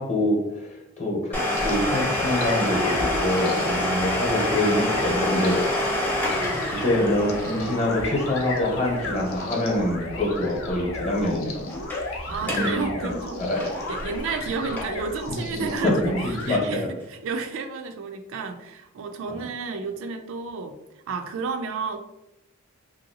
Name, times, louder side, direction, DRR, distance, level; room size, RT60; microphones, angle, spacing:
voice 1, 0.0-5.7 6.7-11.7 12.4-13.1 13.4-13.7 15.5-16.9 19.3-19.4, left 1 dB, 30° left, -1 dB, 0.8 m, -25 dB
Domestic sounds home sounds, 1.3-10.8 11.0-11.1 11.7-12.1 12.4-12.7 13.1-15.1 15.6-15.7 16.4-16.5, left 1 dB, 10° left, 0.6 m, -28 dB
Stream with Phaser, 1.6-16.6, left 2 dB, 70° left, 0.6 m, -34 dB
voice 2, 12.3-13.4 13.9-20.8 21.1-22.0, right 4 dB, 65° right, 6 dB, 0.3 m, -31 dB
3.1 x 2.6 x 2.7 m, 0.93 s
head